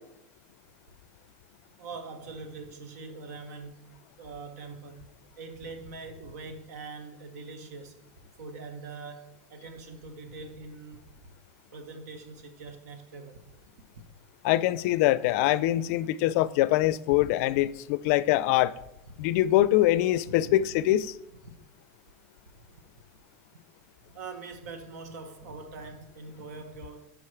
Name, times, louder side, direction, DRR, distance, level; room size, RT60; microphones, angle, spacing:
voice 1, 1.8-5.1 5.4-8.0 8.4-11.1 11.7-13.4 20.2-20.6 21.4-21.5 22.7-22.8 24.1-27.1, right 4 dB, 80° right, 1.1 m, -43 dB
voice 2, 14.4-18.7 19.2-21.2, left 14 dB, 65° left, 0.4 m, -24 dB
5.2 x 4.8 x 5.8 m
supercardioid pair, 120°, 9 cm